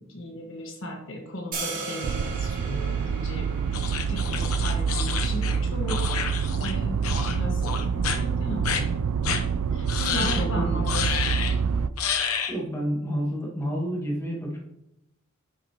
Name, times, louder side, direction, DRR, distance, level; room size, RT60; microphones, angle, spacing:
voice 1, 0.1-3.5 4.1-6.3 6.6-8.9 9.7-11.5, equal, 60° left, 1 dB, 1.4 m, -36 dB
sound 1, 1.5-7.6, right 4 dB, 40° right, 2.2 m, -39 dB
sound 2, 2.0-11.9, right 6 dB, 85° right, 0.4 m, -27 dB
sound 3, 3.7-6.8 7.0-7.4 7.6-8.2 8.6-8.8 9.2-9.4 9.9-10.5 10.9-11.5 12.0-12.6, left 7 dB, 75° left, 0.8 m, -29 dB
voice 2, 10.2-10.8 12.5-14.6, equal, 10° left, -3 dB, 1.6 m, -29 dB
9.2 x 6.8 x 2.9 m, 0.85 s
head